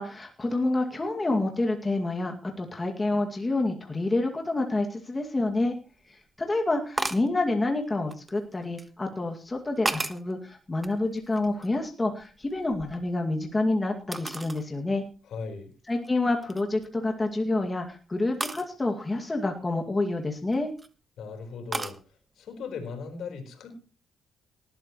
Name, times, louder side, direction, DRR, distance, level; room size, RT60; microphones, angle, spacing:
voice 1, 0.0-5.7 6.1-15.0 15.9-20.7, left 2 dB, 20° left, 2 dB, 2.3 m, -28 dB
sound 1, 5.5-5.6 7.0-7.3 8.1-8.9 9.5-10.3 10.8-11.9 12.2-13.5 14.1-14.7 15.1-15.2 15.9-16.1 16.4-16.9 18.4-18.7 20.4-20.9 21.7-22.0, right 2 dB, 20° right, 1.4 m, -34 dB
voice 2, 15.3-15.7 21.2-22.0 22.4-23.8, left 5 dB, 70° left, 4 dB, 4.5 m, -38 dB
18.5 x 12.5 x 3.2 m, 0.36 s
cardioid pair, 90°, 0 cm